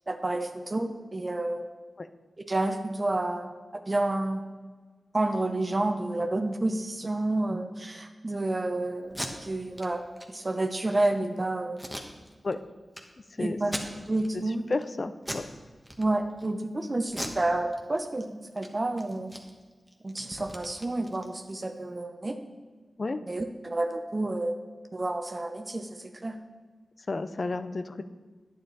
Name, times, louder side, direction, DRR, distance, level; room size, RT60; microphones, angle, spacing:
voice 1, 0.1-1.7 2.5-3.5 3.9-4.5 5.1-11.9 13.4-13.7 14.1-14.6 16.0-19.3 20.0-22.4 23.3-24.5 24.9-26.4, right 2 dB, 35° right, 5 dB, 0.8 m, -30 dB
Packing tape duct tape, 9.0-9.3 9.7-9.9 10.2-10.3 10.7-11.1 11.8-12.6 12.9-13.0 13.6-14.3 14.7-14.9 15.2-15.5 15.8-16.5 17.1-18.2 18.5-18.7 19.0-21.6, equal, 5° right, 1.3 m, -39 dB
voice 2, 14.7-15.5 23.0-23.2 27.1-28.0, left 3 dB, 50° left, 11 dB, 0.5 m, -31 dB
9.8 x 8.8 x 4.1 m, 1.4 s
cardioid pair, 50°, 0 cm